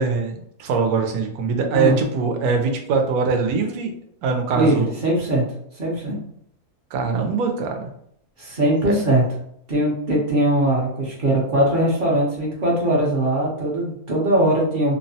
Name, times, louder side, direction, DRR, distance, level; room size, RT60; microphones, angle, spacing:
voice 1, 0.0-3.9 4.2-4.9 6.9-7.9 8.8-9.0, right 4 dB, 75° right, 4 dB, 1.0 m, -22 dB
voice 2, 4.5-5.4 5.8-6.2 8.4-9.2 9.7-15.0, right 1 dB, 45° right, -4 dB, 0.7 m, -20 dB
2.7 x 2.1 x 2.6 m, 0.70 s
omnidirectional pair, 1.7 m